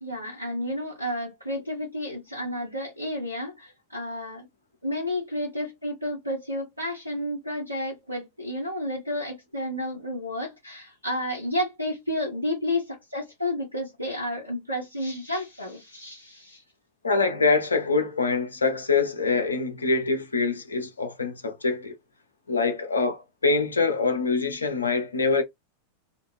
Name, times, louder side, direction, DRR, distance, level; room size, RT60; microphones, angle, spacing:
voice 1, 0.0-4.5 4.8-16.6, left 1 dB, 85° right, 0.9 m, -31 dB
voice 2, 17.0-21.9 22.5-25.4, left 4 dB, 75° left, 0.6 m, -24 dB
2.5 x 2.5 x 3.1 m
figure-of-eight pair, 90°, 0 cm